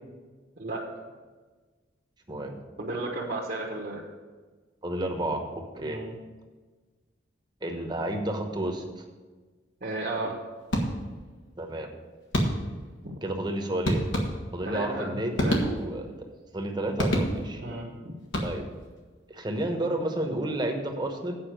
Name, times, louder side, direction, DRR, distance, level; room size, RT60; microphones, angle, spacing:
voice 1, 2.3-2.6 4.8-6.0 7.6-9.0 11.6-11.9 13.2-14.0 14.5-16.1 16.5-17.6 18.4-18.6 19.3-21.4, right 1 dB, 25° right, 3 dB, 1.0 m, -31 dB
voice 2, 2.8-4.0 5.8-6.1 9.8-10.4 13.0-13.1 14.6-15.6 17.6-18.2, right 2 dB, 50° right, -4 dB, 1.2 m, -33 dB
sound 1, 10.7-11.3 12.3-12.9 13.8-14.7 15.3-16.1 17.0-17.7 18.2-18.9, equal, 85° left, 1.5 m, -28 dB
8.5 x 5.4 x 7.7 m, 1.4 s
head